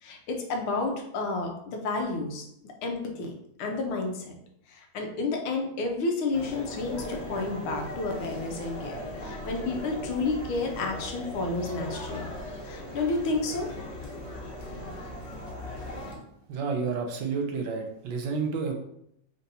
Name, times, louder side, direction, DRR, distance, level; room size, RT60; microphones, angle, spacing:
voice 1, 0.0-2.5 2.8-3.3 3.6-4.3 4.7-12.3 12.6-13.7, left 3 dB, 85° left, 2 dB, 1.6 m, -31 dB
sound 1, 6.3-16.1, left 1 dB, 40° left, 1.1 m, -38 dB
voice 2, 16.5-18.7, right 5 dB, 70° right, 3 dB, 1.3 m, -30 dB
4.4 x 2.7 x 4.0 m, 0.76 s
omnidirectional pair, 2.3 m